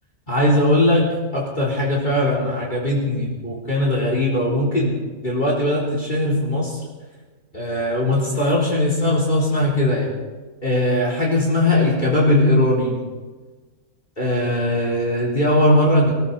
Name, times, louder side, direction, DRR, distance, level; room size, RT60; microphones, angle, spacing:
voice 1, 0.3-6.8 7.5-10.1 10.6-13.0 14.2-16.1, left 1 dB, 30° left, -4 dB, 4.1 m, -19 dB
22.5 x 14.5 x 4.3 m, 1.4 s
omnidirectional pair, 1.6 m